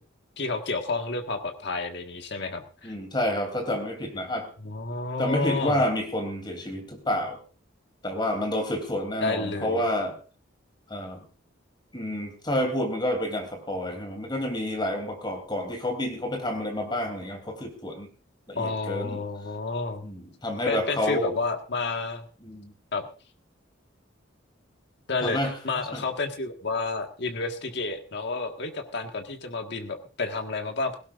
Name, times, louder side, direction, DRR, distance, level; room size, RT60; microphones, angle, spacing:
voice 1, 0.4-2.9 4.6-5.8 9.2-9.8 18.5-20.1 20.7-22.3 22.9-23.1 25.1-25.4 25.6-31.0, left 3 dB, 60° left, 5 dB, 1.7 m, -30 dB
voice 2, 2.8-4.5 5.2-7.4 8.0-10.2 10.9-11.2 11.9-18.1 18.5-19.2 20.0-21.3 22.4-22.7 25.2-25.5 25.9-26.0, left 1 dB, 25° left, 5 dB, 3.2 m, -29 dB
17.5 x 16.5 x 2.5 m, 0.36 s
head